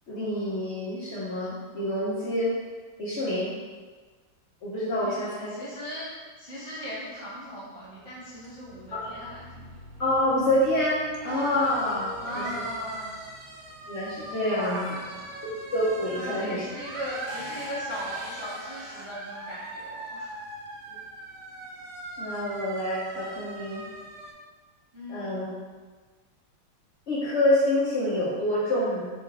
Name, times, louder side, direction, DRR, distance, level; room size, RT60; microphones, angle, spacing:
voice 1, 0.1-2.5 3.0-3.5 4.6-5.5 8.9-9.0 10.0-12.6 13.9-14.8 15.7-16.6 20.9-21.0 22.2-23.8 25.1-25.5 27.1-29.1, left 1 dB, 75° left, -7 dB, 0.6 m, -27 dB
voice 2, 5.0-9.4 12.2-13.1 14.4-15.1 16.1-20.3 24.9-25.4, equal, 35° right, -10 dB, 0.4 m, -38 dB
sound 1, 7.9-24.3, right 2 dB, 80° right, 1.4 m, -40 dB
4.0 x 3.2 x 3.5 m, 1.4 s
omnidirectional pair, 2.1 m